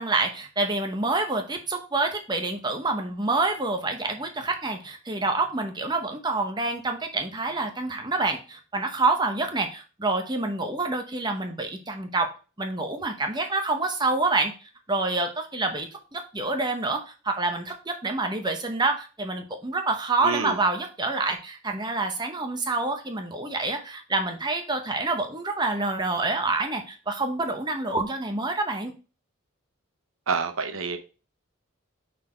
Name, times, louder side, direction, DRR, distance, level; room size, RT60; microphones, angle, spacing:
voice 1, 0.0-12.3 12.6-28.9, right 3 dB, 20° right, 0.9 m, -27 dB
voice 2, 20.2-20.6 30.3-31.0, right 5 dB, 80° right, 0.9 m, -27 dB
5.6 x 4.3 x 4.4 m
head